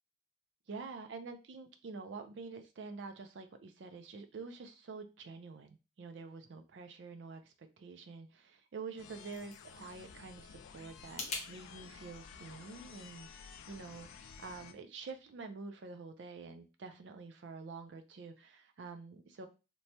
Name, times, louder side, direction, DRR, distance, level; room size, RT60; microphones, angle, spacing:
voice 1, 0.7-19.5, right 4 dB, 65° right, 7 dB, 0.4 m, -47 dB
sound 1, 8.8-11.5, left 3 dB, 35° left, 0.6 m, -45 dB
sound 2, 9.0-14.7, left 6 dB, 85° left, 0.3 m, -53 dB
3.0 x 2.1 x 2.7 m, 0.30 s
head